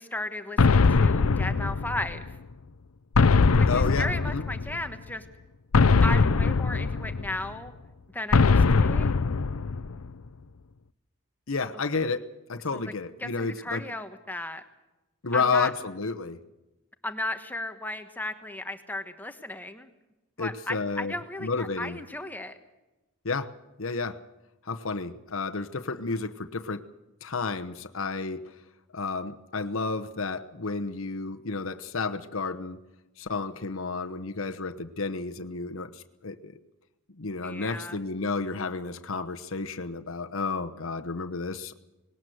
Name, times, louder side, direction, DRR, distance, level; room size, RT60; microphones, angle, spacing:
voice 1, 0.0-2.3 3.5-5.2 6.0-7.7 8.1-9.1 12.7-12.9 13.2-14.6 15.3-15.7 17.0-19.9 20.4-22.6 37.4-38.0, left 1 dB, 10° left, 7 dB, 1.2 m, -35 dB
Huge Footsteps, 0.6-2.4 3.2-4.9 5.7-7.5 8.3-10.1, left 4 dB, 80° left, 0.6 m, -21 dB
voice 2, 3.7-4.4 11.5-12.2 12.5-13.8 15.2-16.4 20.4-21.1 21.4-22.0 23.2-23.5 23.8-24.2 24.7-26.8 27.2-28.5 28.9-32.8 33.2-36.5 37.2-41.7, left 4 dB, 65° left, 6 dB, 1.0 m, -31 dB
19.5 x 18.5 x 7.8 m, 1.0 s
head